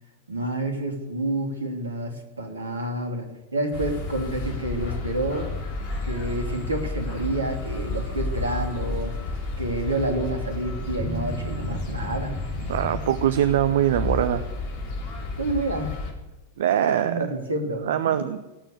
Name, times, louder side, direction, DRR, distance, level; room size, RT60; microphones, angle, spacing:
voice 1, 0.3-5.5 6.0-9.2 9.6-12.4 15.4-16.0 16.8-17.9, right 1 dB, 75° right, 3 dB, 2.9 m, -29 dB
sound 1, 3.7-16.1, left 3 dB, 50° left, 3.6 m, -32 dB
sound 2, 10.9-14.4 14.8-15.0, equal, ahead, 2.9 m, -33 dB
voice 2, 12.7-14.4 16.6-17.2 17.8-18.4, right 10 dB, 60° right, 12 dB, 0.7 m, -22 dB
18.5 x 8.8 x 8.5 m, 1.0 s
figure-of-eight pair, 90°, 0 cm